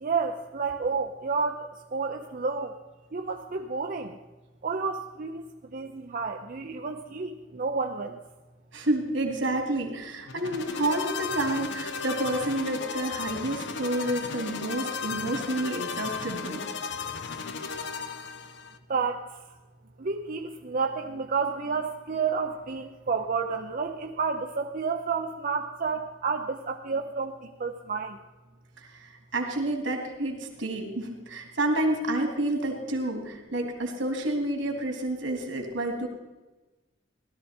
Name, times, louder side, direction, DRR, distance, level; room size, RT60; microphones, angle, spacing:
voice 1, 0.0-2.8 3.1-4.2 4.6-5.4 5.7-8.2 18.9-19.4 20.0-28.2, right 5 dB, 45° right, 3 dB, 0.6 m, -30 dB
voice 2, 8.7-16.6 28.8-36.1, right 1 dB, 80° right, 2 dB, 2.8 m, -29 dB
sound 1, 10.3-18.8, left 5 dB, 65° left, 0.8 m, -35 dB
16.0 x 12.5 x 4.4 m, 1.2 s
head